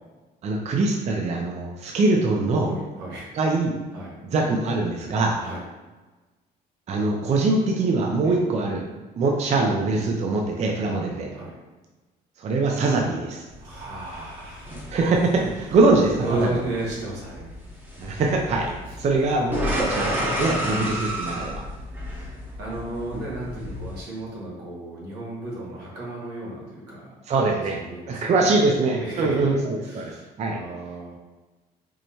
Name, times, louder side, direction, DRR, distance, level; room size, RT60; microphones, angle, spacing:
voice 1, 0.4-2.7 3.3-3.8 4.2-5.4 6.9-8.8 9.2-11.3 12.4-13.5 14.9-16.5 18.0-21.6 27.3-27.8 28.1-30.6, right 3 dB, 40° right, 0 dB, 0.5 m, -23 dB
voice 2, 2.6-3.3 3.9-4.1 5.4-5.6 8.2-8.4 10.8-11.0 11.3-11.5 13.6-15.0 16.2-17.5 18.9-19.0 22.1-27.2 27.4-28.6 29.0-29.5 29.8-31.1, right 2 dB, 90° right, -5 dB, 1.3 m, -34 dB
sound 1, 13.5-24.0, equal, 10° right, 0.8 m, -32 dB
4.5 x 2.1 x 2.7 m, 1.2 s
cardioid pair, 110°, 17 cm